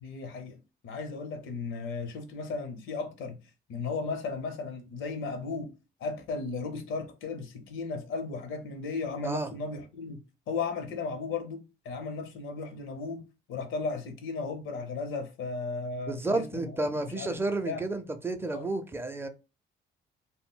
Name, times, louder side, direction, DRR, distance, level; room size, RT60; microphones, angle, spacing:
voice 1, 0.0-0.6 0.8-3.4 3.7-5.7 6.0-13.2 13.5-17.8 18.5-18.7, left 4 dB, 80° left, 0.7 m, -35 dB
voice 2, 16.1-19.3, right 2 dB, 10° right, 0.4 m, -31 dB
2.2 x 2.1 x 3.7 m
cardioid pair, 90°, 20 cm